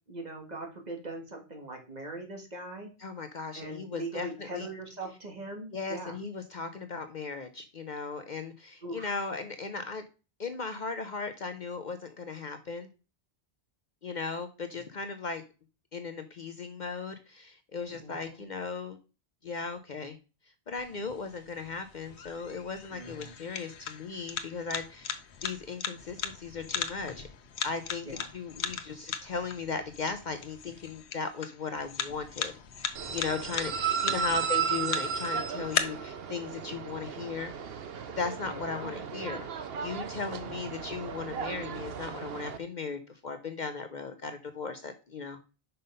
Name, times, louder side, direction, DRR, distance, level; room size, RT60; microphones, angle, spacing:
voice 1, 0.1-2.9 3.5-6.1 8.8-9.2 18.0-18.4 22.9-23.4 28.1-28.3 34.0-34.2 38.5-39.0 40.5-40.7, right 1 dB, 40° right, 2 dB, 2.0 m, -41 dB
voice 2, 3.0-4.7 5.7-10.0 10.4-12.9 14.0-15.4 15.9-19.0 19.4-20.2 20.7-25.2 25.4-27.3 27.6-32.5 33.1-37.5 38.2-45.4, left 4 dB, 50° left, 9 dB, 0.8 m, -37 dB
sound 1, 20.8-35.8, left 7 dB, 85° left, 1.1 m, -38 dB
sound 2, 32.9-42.6, right 7 dB, 65° right, 1.0 m, -34 dB
5.7 x 5.6 x 5.3 m, 0.33 s
omnidirectional pair, 1.1 m